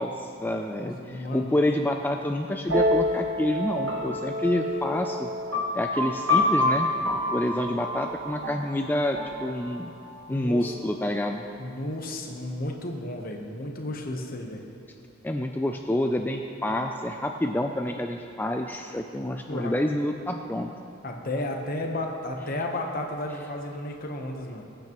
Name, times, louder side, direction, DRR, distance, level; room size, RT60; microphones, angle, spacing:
voice 1, 0.0-5.3 5.7-9.9 10.3-11.4 15.2-20.7, left 1 dB, 10° left, 4 dB, 0.4 m, -28 dB
voice 2, 0.8-1.6 10.3-10.7 11.6-14.6 19.2-19.7 21.0-24.6, left 1 dB, 45° left, 2 dB, 1.1 m, -33 dB
sound 1, 2.7-10.3, left 1 dB, 75° right, 1.6 m, -28 dB
21.5 x 8.8 x 3.0 m, 2.6 s
head